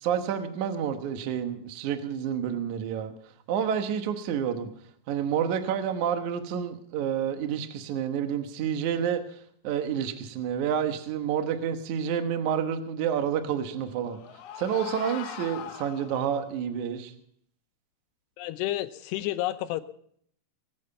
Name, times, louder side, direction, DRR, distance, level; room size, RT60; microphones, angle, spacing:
voice 1, 0.0-3.1 3.5-4.7 5.1-9.2 9.6-14.2 14.6-17.1, right 8 dB, 65° right, 7 dB, 2.0 m, -29 dB
sound 1, 13.6-16.6, left 10 dB, 70° left, 2.3 m, -41 dB
voice 2, 18.4-19.8, left 15 dB, 90° left, 11 dB, 2.9 m, -30 dB
21.0 x 9.3 x 5.6 m, 0.64 s
omnidirectional pair, 4.8 m